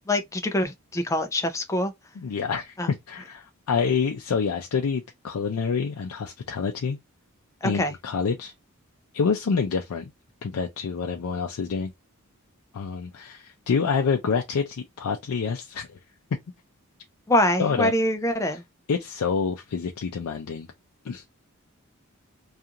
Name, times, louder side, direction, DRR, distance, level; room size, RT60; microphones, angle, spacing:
voice 1, 0.1-1.9 2.8-2.9 7.6-7.9 17.3-18.6, left 1 dB, 15° left, 0.3 m, -24 dB
voice 2, 2.2-7.0 7.6-8.5 9.1-10.1 10.4-11.9 12.7-16.0 17.6-17.9 18.5-18.6 18.9-20.7 21.0-21.2, left 5 dB, 85° left, 0.4 m, -27 dB
2.4 x 2.4 x 2.8 m
head